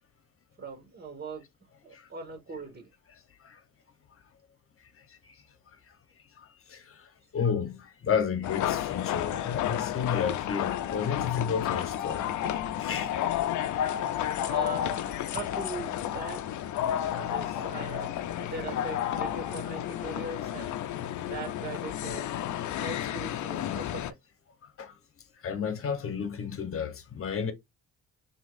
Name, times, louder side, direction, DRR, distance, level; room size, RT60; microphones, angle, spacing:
voice 1, 0.6-1.4 1.8-2.9 13.1-13.2 14.5-15.0 15.3-16.4 17.1-20.8 21.2-22.3 22.7-24.1, right 3 dB, 35° right, 2.2 m, -40 dB
voice 2, 6.4-7.1 7.3-12.3 12.7-13.1 24.8-24.9 25.4-27.5, left 7 dB, 45° left, 1.1 m, -32 dB
sound 1, 8.4-24.1, left 11 dB, 70° left, 0.6 m, -31 dB
6.1 x 2.9 x 2.6 m
cardioid pair, 90°, 30 cm